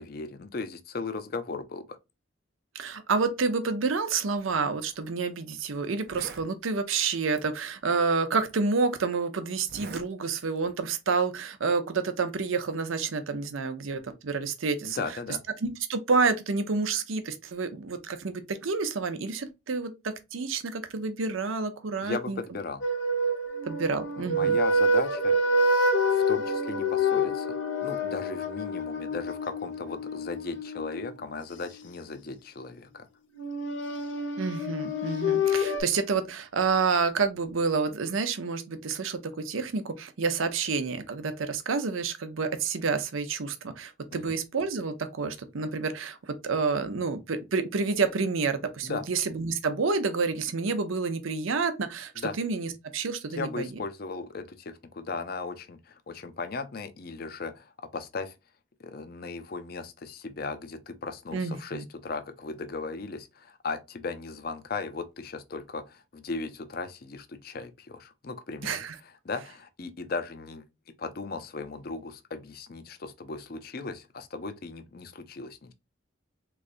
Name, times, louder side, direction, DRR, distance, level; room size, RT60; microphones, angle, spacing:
voice 1, 0.0-2.0 14.8-15.4 22.0-22.8 24.3-25.4 26.1-33.1 44.1-44.3 48.8-49.1 52.2-52.3 53.3-58.4 58.8-68.8 69.0-70.6 71.0-75.7, left 4 dB, 50° left, 0.5 m, -37 dB
voice 2, 2.7-15.0 15.6-22.4 23.7-24.6 34.4-52.1 52.4-53.7 61.3-61.9 68.6-68.9, right 4 dB, 90° right, 0.6 m, -29 dB
Zipper (clothing), 4.9-5.1 5.6-5.7 5.9-6.5 7.4-7.5 8.4-8.5 9.6-10.1 10.4-10.8, right 4 dB, 55° right, 0.6 m, -43 dB
sound 1, 22.8-31.8 33.4-35.8, left 1 dB, 65° left, 0.8 m, -27 dB
3.7 x 3.2 x 2.5 m
head